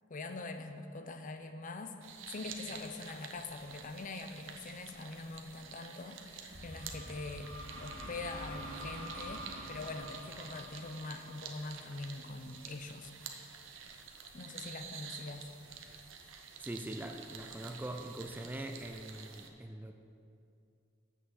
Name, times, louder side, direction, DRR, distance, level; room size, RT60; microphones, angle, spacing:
voice 1, 0.1-2.0 2.3-7.5 7.8-13.1 14.3-15.5, left 3 dB, 40° left, 7 dB, 0.6 m, -44 dB
sound 1, 2.0-19.5, right 6 dB, 75° right, 0.8 m, -49 dB
sound 2, 6.5-12.2, equal, 90° right, 1.6 m, -46 dB
voice 2, 16.6-20.0, right 1 dB, 10° right, 5 dB, 0.4 m, -42 dB
7.4 x 6.4 x 7.7 m, 2.5 s
head